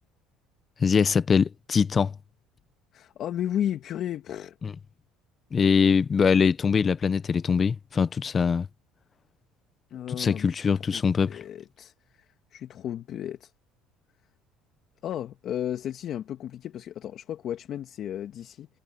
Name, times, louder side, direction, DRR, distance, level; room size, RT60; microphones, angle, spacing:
voice 1, 0.8-2.1 4.6-4.7 5.5-8.7 10.2-11.4, left 6 dB, 35° left, 1.0 m, -23 dB
voice 2, 2.9-4.6 9.9-11.0 11.3-13.5 15.0-18.7, left 10 dB, 55° left, 1.9 m, -34 dB
supercardioid pair, 90°, 0 cm